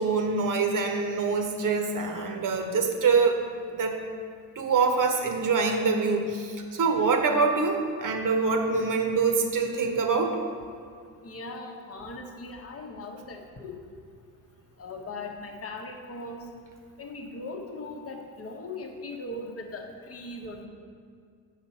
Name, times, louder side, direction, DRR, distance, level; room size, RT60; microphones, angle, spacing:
voice 1, 0.0-3.4 3.7-4.0 4.6-10.4, right 4 dB, 40° right, 4 dB, 1.0 m, -25 dB
voice 2, 11.2-13.9 14.8-16.4 17.0-20.7, left 2 dB, 30° left, 3 dB, 1.0 m, -39 dB
7.2 x 5.6 x 4.1 m, 2.2 s
hypercardioid pair, 60°, 48 cm